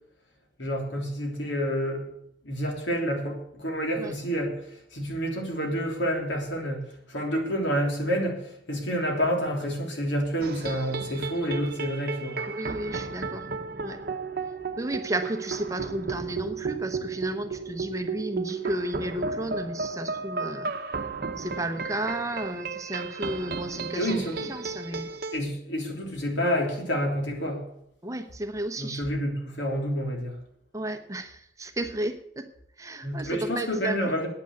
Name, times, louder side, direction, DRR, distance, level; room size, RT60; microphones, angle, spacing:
voice 1, 0.6-2.1 2.4-4.5 4.9-12.4 23.9-24.5 24.9-25.0 25.3-27.6 28.8-30.4 33.0-34.3, equal, 75° left, 1 dB, 3.2 m, -29 dB
sound 1, 10.4-25.4, right 4 dB, 55° right, 0.9 m, -34 dB
voice 2, 12.5-13.5 13.8-14.0 14.8-21.0 21.4-24.2 24.5-25.1 28.0-29.0 30.7-32.5 32.8-34.0, right 1 dB, 15° right, 7 dB, 0.9 m, -33 dB
9.6 x 9.1 x 7.8 m, 0.73 s
head